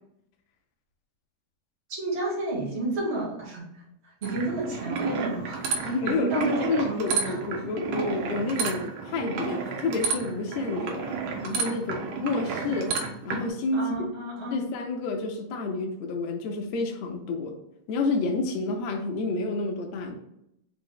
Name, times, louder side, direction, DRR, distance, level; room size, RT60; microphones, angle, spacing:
voice 1, 1.9-3.8 4.2-7.4 13.7-14.7, right 2 dB, 60° right, -6 dB, 0.6 m, -31 dB
sound 1, 4.2-13.5, right 5 dB, 85° right, 1.4 m, -31 dB
voice 2, 5.8-11.1 11.4-13.0 13.2-13.9 14.5-17.5 17.9-20.1, left 3 dB, 80° left, 3 dB, 1.5 m, -29 dB
4.9 x 2.0 x 3.8 m, 0.80 s
omnidirectional pair, 3.5 m